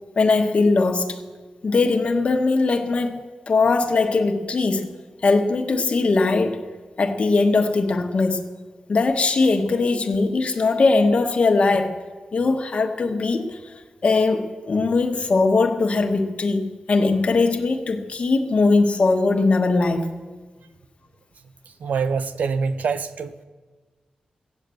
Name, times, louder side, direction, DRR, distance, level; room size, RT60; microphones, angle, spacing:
voice 1, 0.2-1.2 1.6-3.2 3.5-4.9 5.2-6.6 7.0-8.4 8.9-11.9 12.3-13.6 14.0-20.1, left 3 dB, 50° left, 4 dB, 1.3 m, -20 dB
voice 2, 21.8-23.3, right 5 dB, 80° right, 11 dB, 0.7 m, -25 dB
16.0 x 8.3 x 7.8 m, 1.4 s
wide cardioid pair, 100°, 3 cm